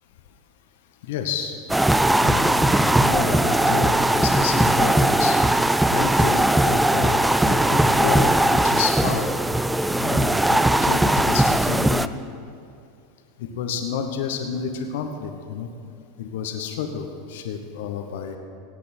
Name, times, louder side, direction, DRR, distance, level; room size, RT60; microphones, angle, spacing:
voice 1, 1.0-1.6 2.2-5.4 5.9-9.3 10.0-12.1 13.4-15.7 16.2-18.4, left 7 dB, 70° left, 5 dB, 1.0 m, -30 dB
sound 1, 1.7-12.1, right 1 dB, 5° right, 0.4 m, -19 dB
17.0 x 8.3 x 4.4 m, 2.5 s
hypercardioid pair, 95°, 0 cm